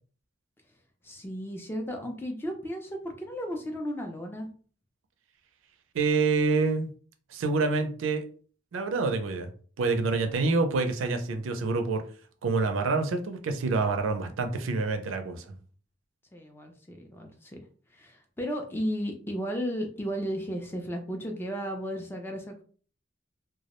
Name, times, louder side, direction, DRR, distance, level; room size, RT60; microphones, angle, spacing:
voice 1, 1.0-4.5 16.3-17.6 17.9-22.6, equal, 10° left, 3 dB, 0.3 m, -34 dB
voice 2, 5.9-6.9 7.3-8.2 8.7-9.5 9.8-12.0 12.4-15.6, right 3 dB, 80° right, 5 dB, 0.4 m, -27 dB
2.2 x 2.0 x 2.9 m, 0.43 s
head